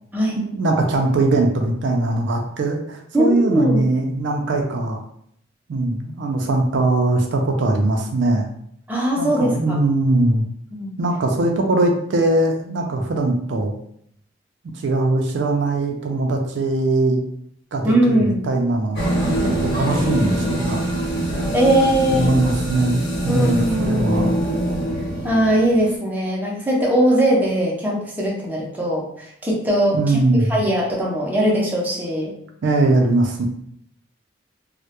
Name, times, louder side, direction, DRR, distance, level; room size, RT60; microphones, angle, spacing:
voice 1, 0.4-5.0 5.7-8.5 9.2-10.4 11.0-13.7 14.7-17.2 17.7-19.0 19.4-20.8 22.1-24.3 29.9-30.6 32.6-33.5, right 2 dB, 70° right, 2 dB, 0.4 m, -21 dB
voice 2, 3.1-3.9 8.9-9.8 10.7-10.9 17.8-18.4 21.5-22.3 23.2-24.3 25.2-32.3, right 1 dB, 10° right, -4 dB, 0.5 m, -20 dB
sound 1, 18.9-25.9, right 1 dB, 55° left, 0.8 m, -24 dB
2.2 x 2.0 x 2.8 m, 0.69 s
head